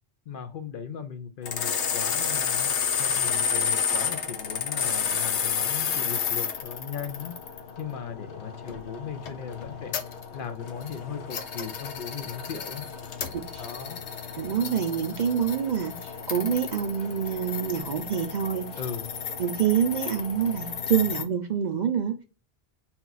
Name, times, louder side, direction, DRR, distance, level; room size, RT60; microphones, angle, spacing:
voice 1, 0.3-7.4 7.8-9.9 10.3-12.9 13.6-14.0 18.8-19.1, left 7 dB, 60° left, 0.6 m, -37 dB
sound 1, 1.4-21.2, left 7 dB, 85° left, 1.0 m, -31 dB
voice 2, 13.3-13.7 14.4-18.7 19.4-22.2, right 8 dB, 60° right, 0.5 m, -26 dB
4.2 x 2.3 x 3.9 m
omnidirectional pair, 1.1 m